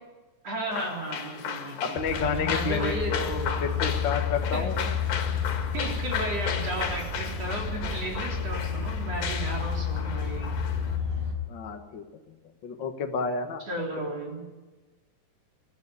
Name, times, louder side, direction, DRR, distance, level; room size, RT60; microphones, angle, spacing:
voice 1, 0.4-3.3 4.5-4.9 5.7-10.4 13.7-14.5, right 1 dB, 45° right, -1 dB, 4.6 m, -34 dB
sound 1, 0.7-11.0, left 7 dB, 75° left, 3.6 m, -35 dB
voice 2, 1.8-4.7 11.5-12.0 12.6-13.6, left 5 dB, 55° left, 4 dB, 1.3 m, -30 dB
sound 2, 2.0-11.3, left 6 dB, 15° right, 4.6 m, -31 dB
23.5 x 13.5 x 9.8 m, 1.2 s
omnidirectional pair, 4.1 m